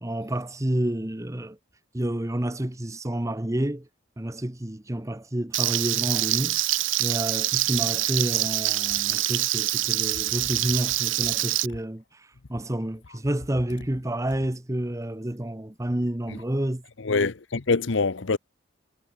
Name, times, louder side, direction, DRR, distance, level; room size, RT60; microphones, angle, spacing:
voice 1, 0.0-1.6 1.9-3.9 4.2-6.6 7.0-12.0 12.5-16.8, right 1 dB, 15° right, 0.9 m, -29 dB
Frying (food), 5.5-11.7, right 15 dB, 75° right, 1.0 m, -25 dB
voice 2, 17.0-18.4, left 4 dB, 65° left, 0.8 m, -24 dB
head